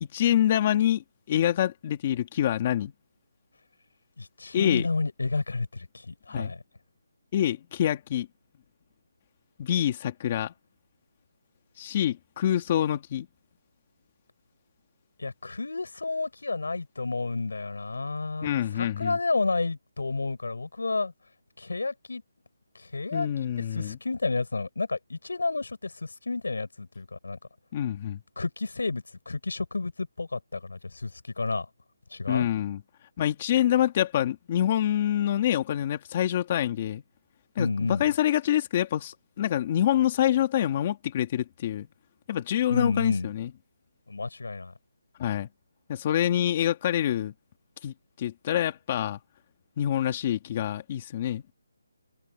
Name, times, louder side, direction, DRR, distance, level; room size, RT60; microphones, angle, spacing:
voice 1, 0.0-2.9 4.5-4.9 6.3-6.5 7.3-8.3 9.6-10.5 11.8-13.3 18.4-19.2 23.1-24.0 27.7-28.2 32.3-32.8 33.2-37.0 37.6-41.9 42.3-43.5 45.2-45.5 45.9-47.3 47.8-49.2 49.8-51.4, left 11 dB, 20° left, 2.0 m, -26 dB
voice 2, 4.2-6.6 15.2-21.1 21.6-22.2 22.8-27.4 28.4-31.1 31.4-31.7 32.1-32.5 37.6-38.0 42.7-43.3 44.1-44.7, left 3 dB, 85° left, 7.0 m, -31 dB
hypercardioid pair, 175°, 0 cm